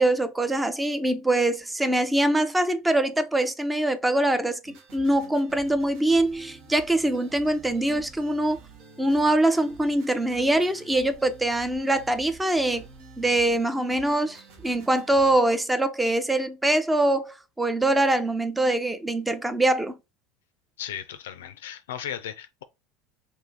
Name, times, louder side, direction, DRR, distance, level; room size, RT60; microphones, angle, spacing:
voice 1, 0.0-8.6 9.0-12.9 13.2-20.0, right 1 dB, 10° right, 0.5 m, -23 dB
sound 1, 4.6-15.4, right 4 dB, 65° right, 0.9 m, -49 dB
voice 2, 20.8-22.6, left 10 dB, 80° left, 0.4 m, -36 dB
2.7 x 2.6 x 3.7 m
hypercardioid pair, 80°, 0 cm